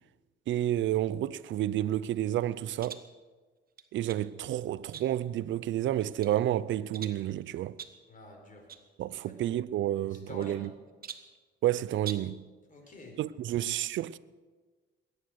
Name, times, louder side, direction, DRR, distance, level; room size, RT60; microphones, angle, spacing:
voice 1, 0.5-3.0 3.9-7.8 9.0-10.7 11.6-12.4 13.2-14.2, right 12 dB, 70° right, 0.6 m, -30 dB
sound 1, 2.8-3.1 3.8-4.3 4.9-5.4 5.9-6.4 6.9-7.3 7.8-8.1 8.7-8.9 9.1-9.2 10.1-10.7 11.0-11.4 12.0-12.4, right 7 dB, 50° right, 1.2 m, -45 dB
voice 2, 8.1-8.7 9.1-9.5 10.1-10.7 12.7-13.2, left 1 dB, 40° left, 4.9 m, -48 dB
21.0 x 9.9 x 6.4 m
cardioid pair, 90°, 20 cm